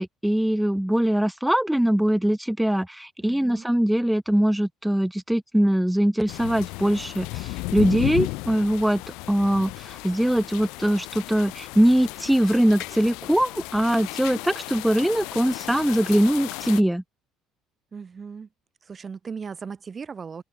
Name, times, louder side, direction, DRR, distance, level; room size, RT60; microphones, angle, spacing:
voice 1, 0.0-9.0 9.3-17.0, right 1 dB, 5° right, 0.9 m, -22 dB
voice 2, 3.2-3.6 17.9-18.5 18.8-20.4, right 5 dB, 35° right, 3.4 m, -37 dB
sound 1, 6.3-16.8, left 25 dB, 75° left, 0.6 m, -34 dB
open air
hypercardioid pair, 60°, 0 cm